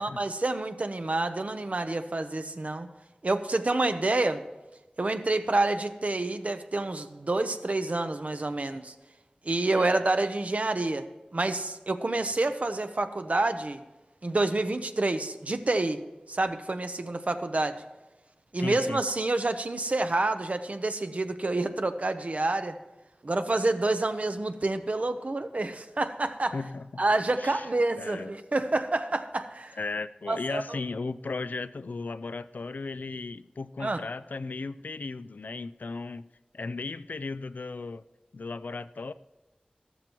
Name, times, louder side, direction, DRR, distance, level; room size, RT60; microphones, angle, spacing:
voice 1, 0.0-2.9 3.2-4.4 5.0-8.9 9.4-11.1 11.3-13.8 14.2-16.0 16.3-17.8 18.5-22.8 23.2-26.6 27.0-29.8 30.3-30.8 33.8-34.0, right 2 dB, 55° right, 9 dB, 0.7 m, -28 dB
voice 2, 9.7-10.0 18.6-19.0 26.5-27.0 27.4-27.7 28.0-28.3 29.8-36.3 36.5-38.0 38.3-39.1, left 3 dB, 85° left, 13 dB, 0.3 m, -36 dB
14.0 x 13.5 x 3.0 m, 1.1 s
wide cardioid pair, 65°, 3 cm